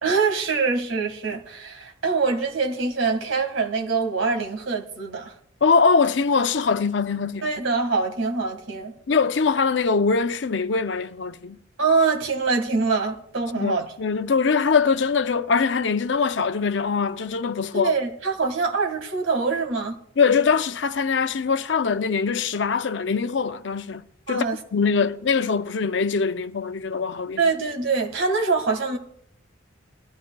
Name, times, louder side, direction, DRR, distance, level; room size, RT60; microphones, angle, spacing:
voice 1, 0.0-5.3 7.4-8.9 11.8-13.9 17.7-19.9 24.3-24.6 24.9-25.0 27.4-29.0, right 4 dB, 80° right, 1.8 m, -24 dB
voice 2, 5.6-7.5 9.1-11.6 13.6-17.9 20.2-24.4 24.7-27.4, left 5 dB, 65° left, 0.6 m, -22 dB
21.0 x 13.5 x 2.3 m
head